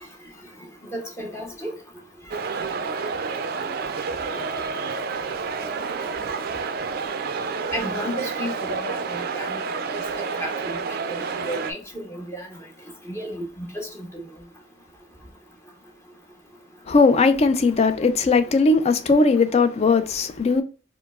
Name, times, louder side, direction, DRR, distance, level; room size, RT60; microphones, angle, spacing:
voice 1, 0.9-1.7 7.7-9.5 9.9-10.5 11.1-11.2 11.5-12.5 13.1-13.7 14.0-14.1, equal, 15° left, 0.7 m, -32 dB
sound 1, 2.3-11.7, right 5 dB, 55° right, 0.4 m, -29 dB
voice 2, 16.9-20.6, left 3 dB, 35° left, 0.3 m, -18 dB
4.4 x 2.0 x 2.3 m
head